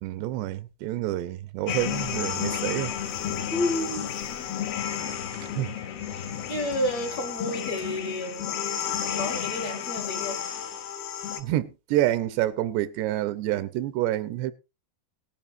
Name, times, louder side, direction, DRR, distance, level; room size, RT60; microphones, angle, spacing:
voice 1, 0.0-3.0 5.4-5.7 11.4-14.5, right 14 dB, 85° right, 3.0 m, -28 dB
sound 1, 1.7-11.4, left 9 dB, 70° left, 2.9 m, -32 dB
voice 2, 3.5-4.1 6.1-10.4, left 1 dB, 55° left, 2.1 m, -31 dB
18.0 x 11.0 x 2.6 m
omnidirectional pair, 4.8 m